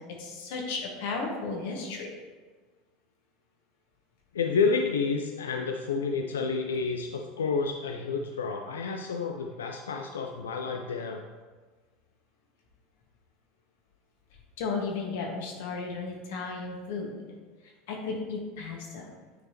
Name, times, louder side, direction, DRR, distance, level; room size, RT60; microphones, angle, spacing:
voice 1, 0.2-2.1 14.6-17.4 17.9-19.1, left 4 dB, 70° left, 0 dB, 1.5 m, -34 dB
voice 2, 4.3-11.2, left 5 dB, 85° left, 3 dB, 0.4 m, -30 dB
9.3 x 4.7 x 2.9 m, 1.3 s
hypercardioid pair, 85°, 0 cm